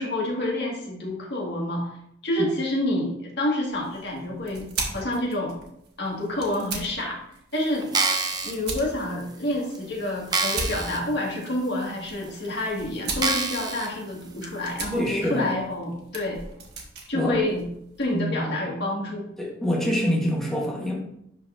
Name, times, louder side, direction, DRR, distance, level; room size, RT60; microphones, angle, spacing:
voice 1, 0.0-1.9 2.2-4.6 4.9-5.6 6.0-7.2 7.5-7.9 8.4-16.4 17.1-17.6 18.0-19.3, left 1 dB, 60° left, -2 dB, 1.9 m, -28 dB
sound 1, 3.7-18.2, right 3 dB, 60° right, 1.4 m, -39 dB
sound 2, 7.8-8.5 9.2-9.3 9.8-9.9 10.3-11.0 11.4-11.5 12.3-12.4 13.2-13.9 14.4-14.5, right 4 dB, 20° right, 0.6 m, -26 dB
voice 2, 14.9-15.5 17.1-17.3 18.1-18.4 19.4-20.9, equal, ahead, -4 dB, 1.3 m, -25 dB
11.0 x 4.1 x 2.6 m, 0.75 s
head